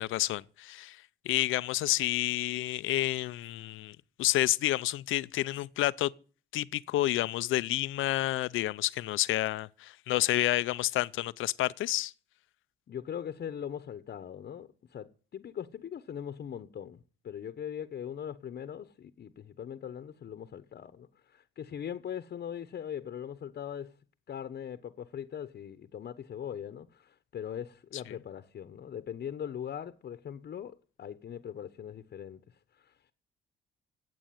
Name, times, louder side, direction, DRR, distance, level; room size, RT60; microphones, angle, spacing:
voice 1, 0.0-6.1 6.5-12.1, left 15 dB, 85° left, 0.7 m, -29 dB
voice 2, 12.9-17.0 17.2-23.9 24.3-32.4 32.7-32.9, left 9 dB, 55° left, 1.1 m, -40 dB
15.0 x 8.6 x 9.4 m
cardioid pair, 90°, 20 cm